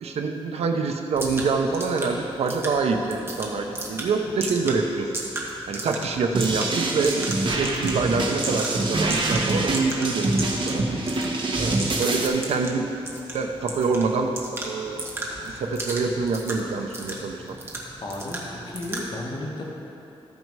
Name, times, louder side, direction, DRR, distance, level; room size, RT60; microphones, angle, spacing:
voice 1, 0.0-5.1 5.7-7.3 7.6-10.8 11.6-12.9 13.3-15.0 15.4-17.6, right 4 dB, 85° right, 4 dB, 0.8 m, -26 dB
sound 1, 1.1-19.1, right 1 dB, 25° right, 1.5 m, -36 dB
sound 2, 6.3-12.3, right 2 dB, 50° right, 1.2 m, -25 dB
voice 2, 18.0-19.7, left 1 dB, 50° left, -2 dB, 1.5 m, -33 dB
14.0 x 5.4 x 4.7 m, 2.9 s
wide cardioid pair, 105°, 10 cm